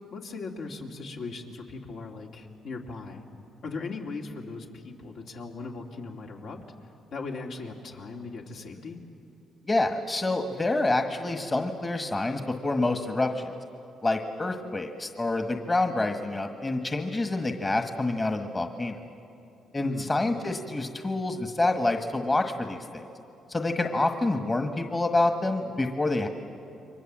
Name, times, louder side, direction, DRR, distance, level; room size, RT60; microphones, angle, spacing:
voice 1, 0.1-3.3 3.6-6.6 7.1-9.0 19.8-20.1, left 3 dB, 70° left, 0 dB, 2.8 m, -38 dB
voice 2, 9.7-13.5 14.0-19.0 19.7-23.0 23.5-26.3, left 2 dB, 25° left, 6 dB, 1.5 m, -27 dB
29.0 x 23.5 x 7.5 m, 2.7 s
cardioid pair, 90°, 0 cm